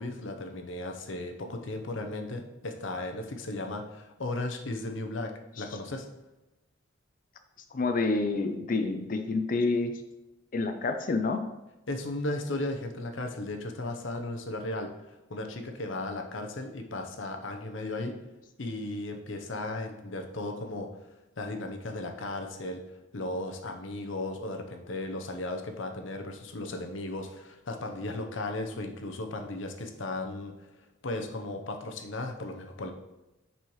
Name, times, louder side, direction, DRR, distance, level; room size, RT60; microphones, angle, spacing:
voice 1, 0.0-5.3 5.6-6.1 11.9-18.1 18.6-20.9 21.4-22.8 23.1-30.6 31.0-32.9, left 2 dB, 70° left, 4 dB, 0.8 m, -35 dB
voice 2, 7.7-9.9 10.5-11.4, left 3 dB, 45° left, 7 dB, 0.5 m, -28 dB
7.3 x 5.5 x 3.1 m, 0.98 s
head